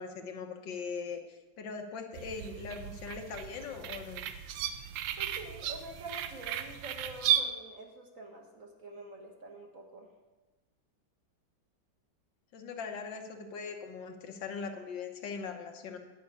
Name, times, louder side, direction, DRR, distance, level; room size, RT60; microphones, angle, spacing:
voice 1, 0.0-4.2 12.5-16.0, left 5 dB, 70° left, 4 dB, 1.6 m, -40 dB
sound 1, 2.1-7.4, right 10 dB, 75° right, 1.3 m, -35 dB
voice 2, 5.2-10.1, right 2 dB, 45° right, 1 dB, 1.5 m, -46 dB
10.0 x 5.7 x 8.4 m, 1.2 s
omnidirectional pair, 2.1 m